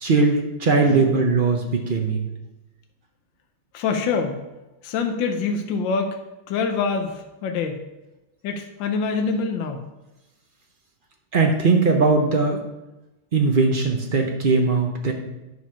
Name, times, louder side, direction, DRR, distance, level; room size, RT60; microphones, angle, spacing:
voice 1, 0.0-2.3 11.3-12.6 13.3-15.1, right 4 dB, 80° right, 2 dB, 0.4 m, -19 dB
voice 2, 3.7-4.4 4.8-6.2 6.5-7.8 8.4-9.8, left 4 dB, 70° left, 4 dB, 1.4 m, -25 dB
10.5 x 4.8 x 5.7 m, 1.0 s
omnidirectional pair, 2.3 m